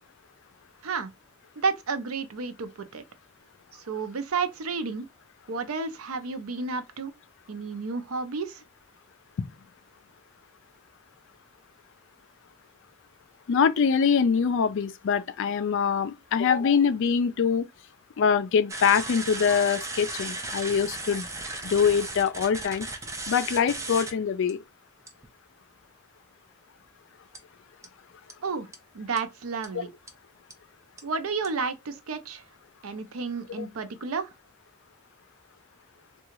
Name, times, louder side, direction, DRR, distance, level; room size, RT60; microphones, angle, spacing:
voice 1, 1.6-3.0 3.7-5.1 5.5-7.1 7.5-8.6 28.4-28.7 28.9-29.9 31.0-32.4 32.8-34.3, right 4 dB, 70° right, 0.5 m, -31 dB
voice 2, 13.5-17.6 18.2-21.3 21.6-22.9 23.3-24.6 33.6-33.7, left 6 dB, 60° left, 0.4 m, -24 dB
sound 1, 18.7-24.1 24.5-24.6 25.1-25.3 27.3-27.4 27.8-27.9 28.3-28.4 28.7-28.8 29.2-29.3 29.6-29.7 30.1-30.2 30.5-30.6 31.0-31.1 31.4-31.5, right 2 dB, 15° right, 0.5 m, -36 dB
3.7 x 2.3 x 2.9 m
head